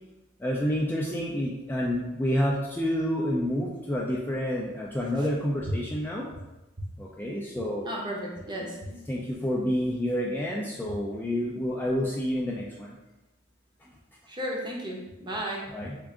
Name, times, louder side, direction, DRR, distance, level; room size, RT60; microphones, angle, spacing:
voice 1, 0.4-6.3 7.0-7.9 8.6-13.0 15.7-16.0, equal, 10° left, -3 dB, 0.3 m, -29 dB
voice 2, 7.8-8.8 14.3-15.7, equal, 20° right, -2 dB, 0.6 m, -34 dB
3.7 x 2.5 x 3.4 m, 0.99 s
head